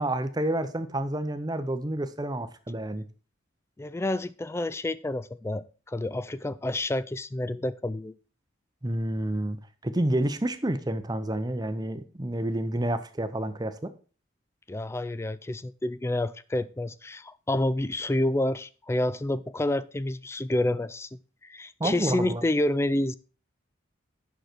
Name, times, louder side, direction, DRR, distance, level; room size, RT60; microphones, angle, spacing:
voice 1, 0.0-3.1 8.8-9.6 9.8-13.9 21.8-22.4, right 1 dB, 20° right, 0.7 m, -29 dB
voice 2, 3.8-8.1 14.7-21.1 21.4-23.2, left 1 dB, 15° left, 0.3 m, -29 dB
9.1 x 6.4 x 4.5 m
head